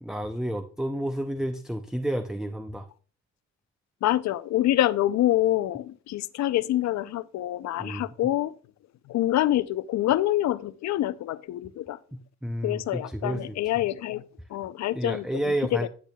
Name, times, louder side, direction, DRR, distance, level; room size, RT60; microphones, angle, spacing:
voice 1, 0.0-2.9 7.8-8.0 12.1-13.6 14.9-15.9, right 1 dB, ahead, 0.5 m, -31 dB
voice 2, 4.0-8.5 9.1-12.0 12.6-14.2 14.5-15.9, left 14 dB, 65° left, 0.5 m, -26 dB
10.0 x 8.7 x 2.3 m
cardioid pair, 90°, 30 cm